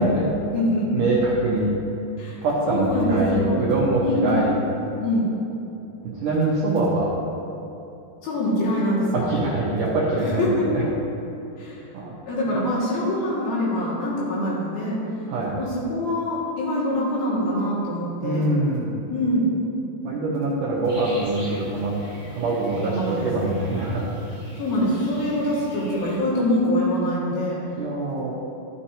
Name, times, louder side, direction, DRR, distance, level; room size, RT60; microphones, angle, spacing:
voice 1, 0.0-0.3 0.9-1.7 2.4-4.5 6.0-7.1 9.1-10.8 11.2-11.3 11.9-12.1 12.5-12.6 15.3-15.6 18.2-18.9 20.0-21.9 22.3-24.0 27.8-28.3, right 2 dB, 75° right, -6 dB, 2.0 m, -24 dB
voice 2, 0.5-1.1 2.2-2.4 2.7-3.8 4.0-4.4 5.0-5.3 8.2-9.3 10.2-10.7 11.6-11.8 12.3-15.0 15.6-18.5 19.1-19.5 22.9-23.3 24.6-27.6, left 1 dB, 60° left, -7 dB, 3.6 m, -24 dB
sound 1, 20.9-26.2, equal, 45° left, 0.6 m, -42 dB
14.0 x 7.2 x 2.8 m, 2.9 s
omnidirectional pair, 5.0 m